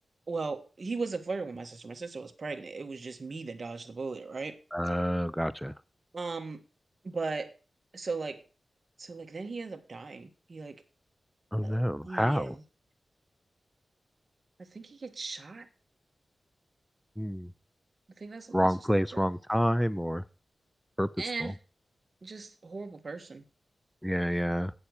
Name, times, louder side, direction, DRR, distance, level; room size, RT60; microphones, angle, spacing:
voice 1, 0.3-4.6 6.1-6.6 7.0-7.5 7.9-8.4 9.0-10.8 11.6-12.6 14.6-15.7 18.2-18.7 19.1-19.2 21.2-21.6 22.2-23.4, right 4 dB, 45° right, 5 dB, 1.5 m, -37 dB
voice 2, 4.7-5.7 11.5-12.5 17.2-17.5 18.5-20.2 21.0-21.1 21.4-21.5 24.0-24.7, equal, ahead, 16 dB, 0.5 m, -28 dB
8.5 x 7.2 x 6.5 m, 0.35 s
wide cardioid pair, 110°, 0 cm